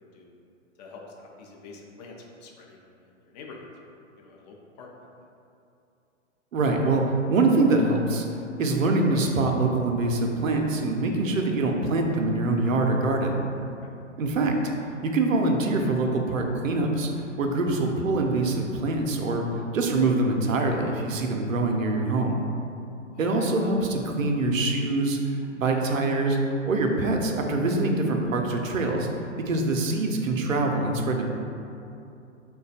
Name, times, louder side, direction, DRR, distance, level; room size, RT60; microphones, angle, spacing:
voice 1, 0.0-0.3 0.8-3.7 3.9-4.9 5.2-5.3 23.1-23.5, left 3 dB, 35° left, -1 dB, 0.5 m, -47 dB
voice 2, 6.5-8.3 8.6-13.4 14.2-14.6 15.0-17.1 17.4-19.5 19.7-22.4 23.2-26.4 26.7-29.1 29.4-31.3, right 2 dB, 85° right, 2 dB, 0.6 m, -24 dB
3.2 x 2.3 x 3.9 m, 2.7 s
hypercardioid pair, 115°, 38 cm